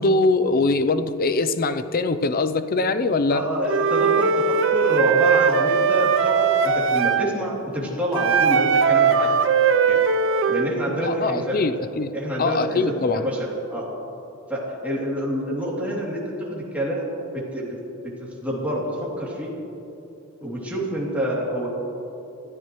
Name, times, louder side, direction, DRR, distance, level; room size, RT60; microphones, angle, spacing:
voice 1, 0.0-3.4 11.0-12.1 12.4-13.3, left 3 dB, 45° left, 11 dB, 0.6 m, -22 dB
voice 2, 3.3-9.3 9.9-10.0 10.5-11.6 12.1-12.8 13.1-13.9 14.5-16.2 16.5-17.1 17.5-17.7 18.2-18.9 19.2-19.5 20.4-21.8, equal, 5° right, -6 dB, 2.9 m, -27 dB
Wind instrument woodwind instrument, 3.7-7.3 8.1-10.7, right 6 dB, 65° right, 0.7 m, -19 dB
27.0 x 13.5 x 3.2 m, 3.0 s
head